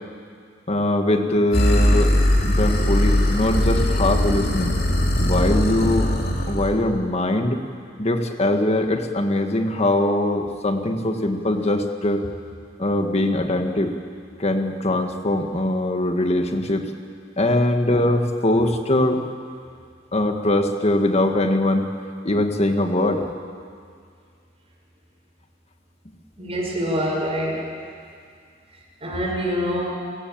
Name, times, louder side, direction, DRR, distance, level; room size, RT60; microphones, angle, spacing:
voice 1, 0.7-2.1 2.4-4.8 5.2-6.1 6.5-7.6 8.0-12.2 12.8-13.9 14.4-16.9 17.4-19.2 20.1-21.9 22.2-23.2, left 1 dB, 35° left, 5 dB, 1.8 m, -21 dB
sound 1, 1.5-6.7, left 1 dB, 55° left, 3.2 m, -20 dB
voice 2, 26.4-27.6 29.0-30.0, equal, 35° right, -1 dB, 5.8 m, -25 dB
29.0 x 15.5 x 8.9 m, 2.2 s
head